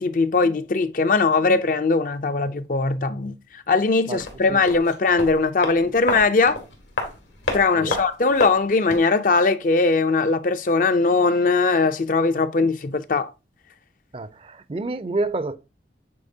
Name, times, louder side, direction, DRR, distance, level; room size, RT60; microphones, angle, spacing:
voice 1, 0.0-6.6 7.5-13.3, left 3 dB, 45° left, 0.4 m, -20 dB
sound 1, 4.2-9.2 9.4-9.5, left 2 dB, 85° left, 2.0 m, -31 dB
voice 2, 14.1-15.6, right 2 dB, 30° right, 0.4 m, -28 dB
8.5 x 4.2 x 2.7 m
head